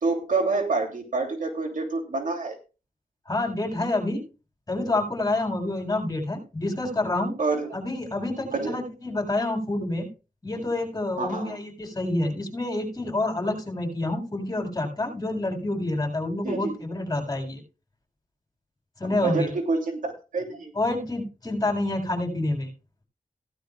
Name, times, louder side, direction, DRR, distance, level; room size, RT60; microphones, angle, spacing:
voice 1, 0.0-2.6 7.4-7.7 8.5-8.8 11.2-11.5 16.4-16.8 19.0-20.7, right 3 dB, 70° right, 2 dB, 2.9 m, -27 dB
voice 2, 3.3-4.2 4.7-7.4 7.7-10.1 10.4-17.6 19.0-19.5 20.7-22.7, left 2 dB, 25° left, 2 dB, 7.0 m, -28 dB
17.5 x 11.5 x 2.4 m, 0.33 s
wide cardioid pair, 125°, 14 cm